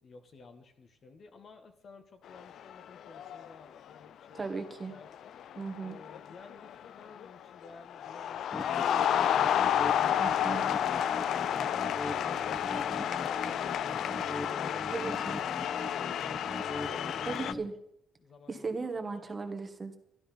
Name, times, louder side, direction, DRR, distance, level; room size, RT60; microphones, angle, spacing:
voice 1, 0.0-5.3 5.8-9.5 10.0-16.3 16.8-17.7 18.2-18.9, left 4 dB, 50° left, 7 dB, 1.6 m, -54 dB
sound 1, 2.3-2.7 3.0-3.5 4.4-4.7 5.1-7.3 7.6-17.5, left 10 dB, 70° left, 0.4 m, -31 dB
voice 2, 4.3-4.9 5.6-6.0 10.2-10.6 14.9-15.4 17.3-17.7 18.5-20.0, right 4 dB, 30° right, 7 dB, 1.6 m, -37 dB
sound 2, 8.5-17.6, left 2 dB, 25° left, 1.6 m, -40 dB
12.0 x 11.0 x 5.5 m, 0.76 s
cardioid pair, 90°, 0 cm